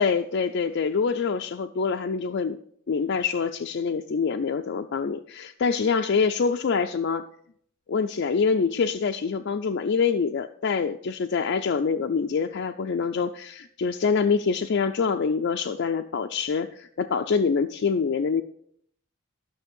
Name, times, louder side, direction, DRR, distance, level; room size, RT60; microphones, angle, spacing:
voice 1, 0.0-2.6 2.9-7.2 7.9-18.4, left 5 dB, 55° left, 5 dB, 0.4 m, -25 dB
12.0 x 6.3 x 5.2 m, 0.66 s
head